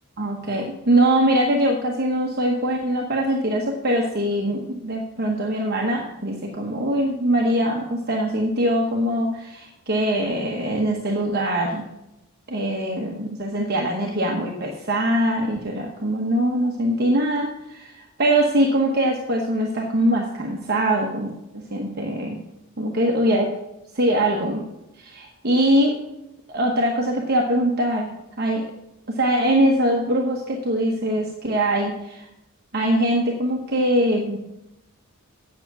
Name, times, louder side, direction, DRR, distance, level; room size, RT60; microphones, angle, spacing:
voice 1, 0.2-11.8 12.5-22.4 22.8-23.5 23.9-24.6 25.0-25.9 26.5-28.6 29.1-32.2 32.7-34.4, right 1 dB, 45° right, 0 dB, 1.1 m, -22 dB
7.9 x 7.1 x 8.2 m, 0.90 s
head